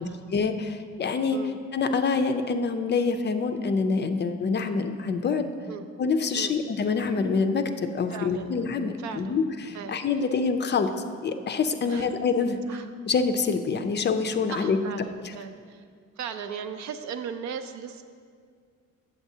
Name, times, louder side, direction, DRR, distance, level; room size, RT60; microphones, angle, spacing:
voice 1, 0.0-1.4 1.7-5.5 6.0-10.9 11.2-12.6 13.1-14.8, left 5 dB, 35° left, 8 dB, 0.4 m, -26 dB
voice 2, 8.1-8.5 9.0-9.4 9.7-10.0 11.8-12.1 12.7-12.9 14.5-15.8 16.2-18.0, right 7 dB, 70° right, 9 dB, 0.5 m, -37 dB
7.9 x 7.0 x 2.7 m, 2.1 s
cardioid pair, 90°, 30 cm